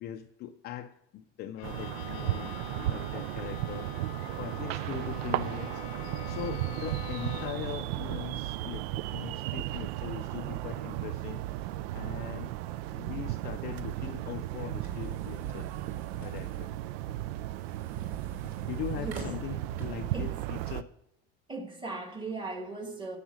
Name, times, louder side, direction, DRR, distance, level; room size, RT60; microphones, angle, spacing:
voice 1, 0.0-3.9 4.4-5.8 6.2-11.4 11.9-12.5 13.0-15.7 16.1-16.7 18.6-20.9, left 11 dB, 35° left, 0.4 m, -41 dB
Bowed string instrument, 1.6-7.8, left 11 dB, 90° left, 0.8 m, -45 dB
sound 1, 1.6-20.8, right 15 dB, 90° right, 0.5 m, -35 dB
sound 2, 13.8-20.2, right 3 dB, 40° right, 2.8 m, -47 dB
voice 2, 21.5-23.2, right 3 dB, 15° right, 1.3 m, -37 dB
10.0 x 7.1 x 6.1 m
cardioid pair, 155°, 30 cm